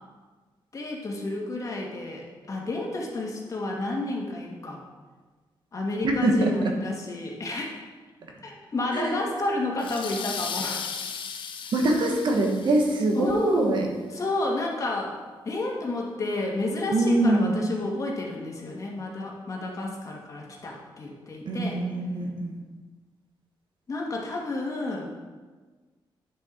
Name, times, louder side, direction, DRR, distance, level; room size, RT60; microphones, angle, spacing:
voice 1, 0.7-4.8 5.7-7.7 8.4-10.9 13.1-13.8 14.1-15.1 15.4-21.8 23.9-25.1, left 2 dB, 40° left, -1 dB, 1.8 m, -31 dB
voice 2, 6.0-6.7 8.9-9.2 11.7-13.9 16.9-17.6 21.4-22.6, right 2 dB, 65° right, 2 dB, 1.4 m, -23 dB
sound 1, 9.8-13.2, left 6 dB, 75° left, 0.8 m, -36 dB
9.3 x 6.3 x 4.5 m, 1.4 s
cardioid pair, 110°, 9 cm